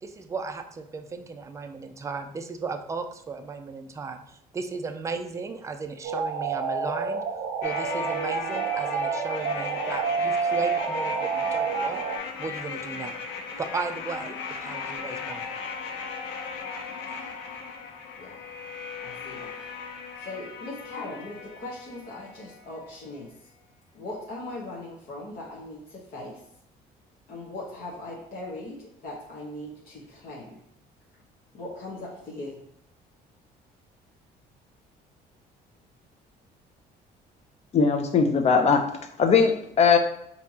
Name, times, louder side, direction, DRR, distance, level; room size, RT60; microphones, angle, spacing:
voice 1, 0.0-7.2 7.6-12.0 12.4-13.2 13.6-15.5, right 4 dB, 20° right, 6 dB, 0.3 m, -35 dB
sound 1, 6.0-12.2, right 5 dB, 90° right, 0.5 m, -28 dB
sound 2, 7.6-22.6 22.9-23.0, left 5 dB, 85° left, 0.6 m, -37 dB
voice 2, 19.0-19.6 20.2-23.3 23.9-26.4 27.3-30.6 31.5-32.6, left 2 dB, 60° left, -4 dB, 1.0 m, -39 dB
voice 3, 37.7-38.8 39.2-40.0, left 5 dB, 40° left, 6 dB, 0.5 m, -19 dB
4.3 x 2.8 x 2.8 m, 0.72 s
cardioid pair, 110°, 17 cm